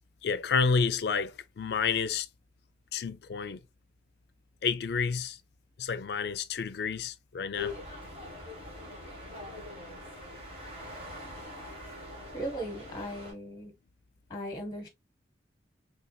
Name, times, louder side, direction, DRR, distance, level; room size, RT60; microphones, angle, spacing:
voice 1, 0.2-2.3 2.9-3.6 4.6-5.4 5.8-7.7, left 5 dB, 65° left, 0.4 m, -30 dB
sound 1, 7.5-13.3, left 2 dB, 35° right, 1.4 m, -43 dB
voice 2, 12.3-13.7 14.3-14.9, right 1 dB, 20° left, 0.8 m, -37 dB
4.2 x 3.2 x 2.3 m
head